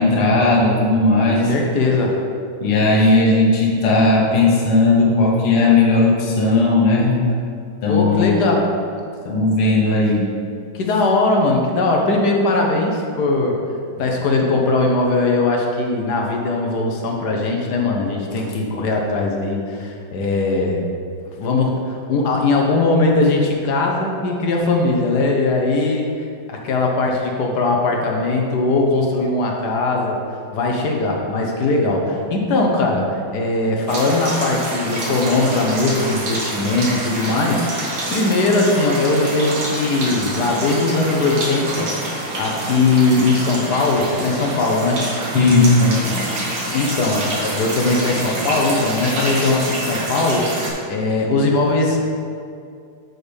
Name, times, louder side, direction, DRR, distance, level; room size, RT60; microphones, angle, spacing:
voice 1, 0.0-1.5 2.6-7.2 7.8-8.5 9.2-10.3 45.3-46.3, left 2 dB, 85° left, -3 dB, 2.2 m, -16 dB
voice 2, 1.5-2.1 7.9-8.7 10.7-13.6 14.0-20.8 21.4-26.1 26.5-30.2 30.5-45.0 46.7-52.0, left 2 dB, 55° left, 0 dB, 1.4 m, -20 dB
sound 1, 33.9-50.7, right 1 dB, 65° right, 2.3 m, -27 dB
6.6 x 6.4 x 5.3 m, 2.4 s
omnidirectional pair, 2.4 m